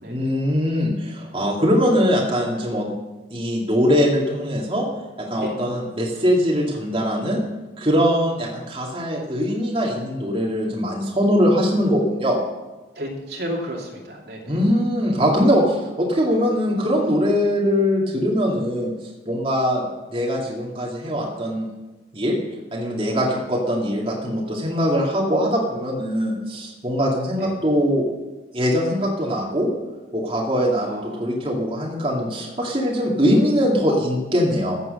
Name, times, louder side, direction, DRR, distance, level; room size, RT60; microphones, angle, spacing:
voice 1, 0.1-2.9 3.3-4.8 5.2-7.4 7.8-12.4 14.5-18.9 19.3-21.7 22.1-22.4 22.7-28.1 28.5-29.7 30.1-34.8, equal, 30° right, -3 dB, 2.2 m, -21 dB
voice 2, 13.0-14.6 27.4-27.5 30.7-31.3, equal, 60° right, -1 dB, 2.7 m, -32 dB
14.5 x 8.1 x 6.6 m, 1.1 s
head